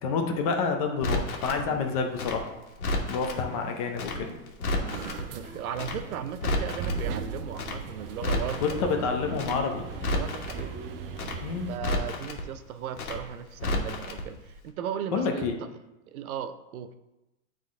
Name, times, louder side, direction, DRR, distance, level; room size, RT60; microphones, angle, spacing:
voice 1, 0.0-2.5 3.1-4.3 8.6-9.9 11.4-11.7 15.1-15.5, left 5 dB, 25° left, 4 dB, 0.5 m, -28 dB
Crackle, 1.0-1.6 2.1-3.4 3.9-4.2 4.5-5.2 5.7-6.0 6.3-7.0 7.5-7.8 8.1-8.8 9.3-9.6 9.9-10.6 11.1-11.4 11.7-12.4 12.9-13.2 13.5-14.2 14.5-14.6, left 1 dB, 85° left, 1.5 m, -31 dB
sound 1, 1.0-1.1 1.6-1.8 2.2-2.4 2.9-3.1 3.5-3.7 4.2-4.4 4.8-5.0 5.4-5.7 6.1-6.4 6.7-7.1 7.3-7.7 8.0-8.3 8.6-11.0, right 1 dB, 15° right, 0.9 m, -46 dB
voice 2, 4.7-9.2 10.1-10.7 11.7-15.7 16.1-16.9, right 8 dB, 85° right, 11 dB, 0.7 m, -37 dB
sound 2, 4.9-11.8, right 5 dB, 45° right, 0.5 m, -38 dB
9.1 x 3.8 x 3.6 m, 0.99 s
supercardioid pair, 165°, 42 cm